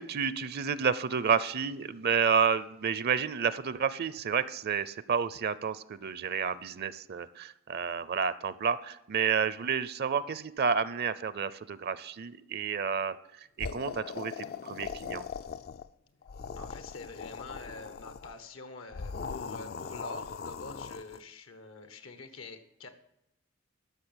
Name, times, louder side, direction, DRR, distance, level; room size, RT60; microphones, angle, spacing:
voice 1, 0.0-13.2 13.6-15.2, right 6 dB, 50° right, 16 dB, 0.5 m, -30 dB
sound 1, 13.6-15.9 16.2-18.3 18.9-21.2, left 5 dB, 50° left, 0.4 m, -40 dB
voice 2, 16.5-22.9, left 3 dB, 80° left, 9 dB, 1.2 m, -46 dB
12.5 x 6.4 x 8.8 m, 0.87 s
head